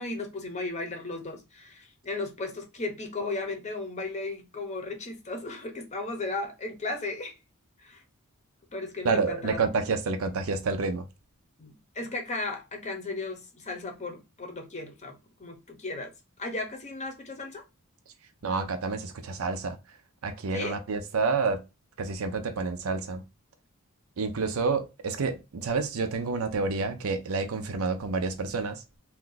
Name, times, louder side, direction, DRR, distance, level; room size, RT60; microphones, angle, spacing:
voice 1, 0.0-7.4 7.8-8.0 8.7-9.6 11.6-16.1 16.4-17.6 20.5-20.8, left 2 dB, 30° left, 0.7 m, -35 dB
voice 2, 9.0-11.1 18.4-19.8 20.2-21.6 22.0-23.2 24.2-28.8, right 4 dB, 65° right, 0.5 m, -29 dB
2.6 x 2.3 x 3.8 m
head